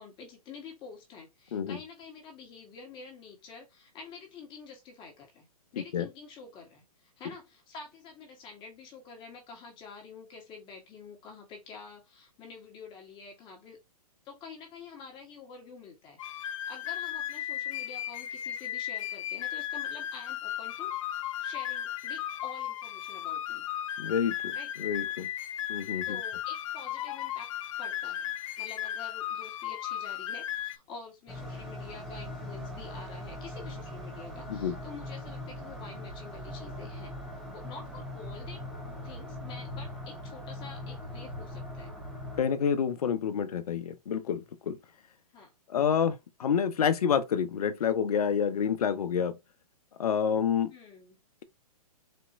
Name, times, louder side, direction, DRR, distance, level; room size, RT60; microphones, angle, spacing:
voice 1, 0.0-13.8 14.2-23.6 24.5-24.7 26.0-27.5 27.8-37.1 37.5-38.7 39.0-41.9 45.3-45.5 50.7-51.2, left 4 dB, 25° left, 1.6 m, -48 dB
voice 2, 5.8-6.1 24.0-25.3 25.7-26.2 34.5-34.8 42.4-44.8 45.7-46.1 46.4-49.4 50.0-50.7, left 7 dB, 70° left, 0.8 m, -28 dB
sound 1, 16.2-30.8, left 11 dB, 55° left, 0.4 m, -35 dB
sound 2, 31.3-42.4, left 1 dB, ahead, 1.2 m, -41 dB
4.3 x 2.9 x 2.6 m
hypercardioid pair, 135°, 20 cm